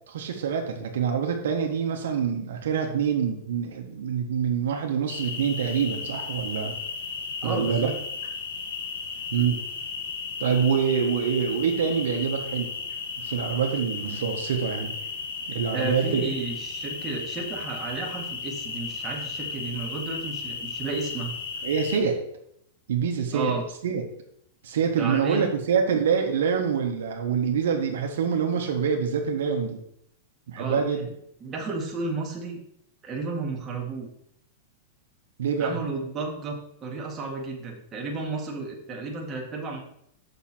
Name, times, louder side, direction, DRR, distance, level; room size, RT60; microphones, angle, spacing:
voice 1, 0.1-6.8 7.4-7.9 9.3-9.6 10.4-12.7 13.2-14.9 15.5-16.2 21.6-22.2 22.9-23.6 23.8-24.0 24.6-29.8 30.5-31.1 35.4-35.8, right 7 dB, 80° right, 3 dB, 1.3 m, -25 dB
sound 1, 5.1-22.0, left 5 dB, 80° left, 1.6 m, -35 dB
voice 2, 7.4-7.9 15.7-21.4 23.3-23.7 25.0-25.5 30.6-30.8 31.4-32.6 33.0-34.1 35.6-39.8, right 3 dB, 20° right, -1 dB, 1.8 m, -32 dB
6.8 x 6.5 x 4.4 m, 0.73 s
supercardioid pair, 145°, 0 cm